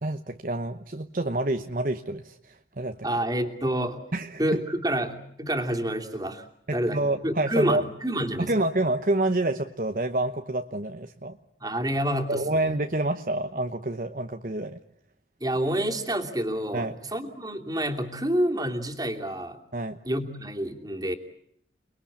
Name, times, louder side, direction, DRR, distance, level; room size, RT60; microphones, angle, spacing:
voice 1, 0.0-3.1 4.1-4.4 6.9-7.8 8.4-11.4 12.3-14.8 16.7-17.0 19.7-20.0, right 2 dB, 50° right, 6 dB, 1.1 m, -28 dB
voice 2, 3.0-4.0 4.4-6.5 6.7-8.5 11.6-12.8 15.4-19.6 20.0-21.2, right 1 dB, 20° right, 4 dB, 2.9 m, -28 dB
29.5 x 21.5 x 8.6 m, 0.71 s
head